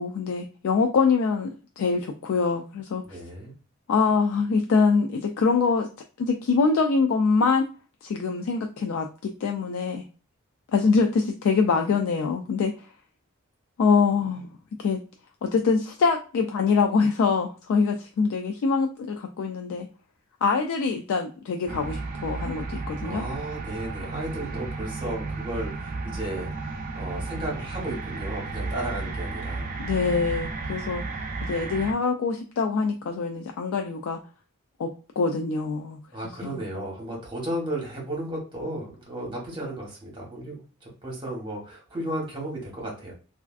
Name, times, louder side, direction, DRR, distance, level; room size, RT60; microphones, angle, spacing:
voice 1, 0.0-1.5 1.8-3.2 3.9-5.9 6.2-7.7 8.0-10.0 10.7-12.7 13.8-14.5 14.8-15.0 15.4-19.9 20.4-23.2 29.8-31.0 31.4-34.2 34.8-34.9 35.2-36.0 36.4-36.6, left 4 dB, 65° left, 3 dB, 0.3 m, -24 dB
voice 2, 3.0-3.5 23.0-29.7 36.1-43.1, right 1 dB, 25° right, -2 dB, 1.1 m, -34 dB
sound 1, 21.7-31.9, right 3 dB, 40° right, 0.4 m, -33 dB
3.2 x 2.4 x 2.3 m, 0.36 s
head